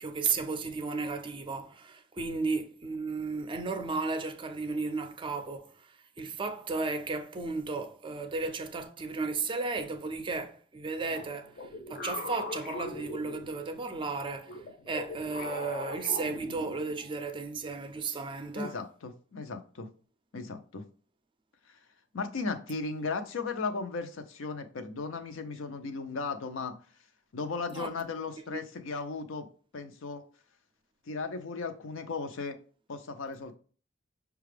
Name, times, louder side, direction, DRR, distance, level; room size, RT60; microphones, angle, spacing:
voice 1, 0.0-5.9 6.2-11.5 11.9-18.8 27.7-27.9 28.5-28.6, right 4 dB, 25° right, 0.4 m, -34 dB
sound 1, 11.1-13.9 14.4-17.2, left 2 dB, 50° left, 0.7 m, -40 dB
voice 2, 18.5-19.9 20.3-20.8 22.1-26.8 27.3-29.5 29.7-30.2 31.1-32.6 32.9-33.6, left 4 dB, 85° left, 0.6 m, -36 dB
5.7 x 2.3 x 3.3 m
head